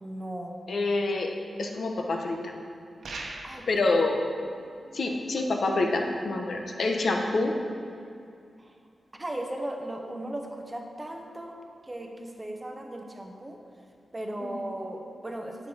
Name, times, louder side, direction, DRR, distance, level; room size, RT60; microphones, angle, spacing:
voice 1, 0.0-0.6 3.4-3.9 8.6-8.7 9.2-11.6 11.8-13.6 14.1-15.7, right 1 dB, 15° right, 2 dB, 0.9 m, -37 dB
voice 2, 0.7-1.3 1.6-2.5 3.7-4.2 4.9-7.5 14.4-14.6, left 2 dB, 60° left, 2 dB, 1.0 m, -27 dB
sound 1, 3.0-3.8, right 2 dB, 75° right, 1.2 m, -38 dB
9.1 x 8.5 x 4.8 m, 2.4 s
wide cardioid pair, 165°, 0 cm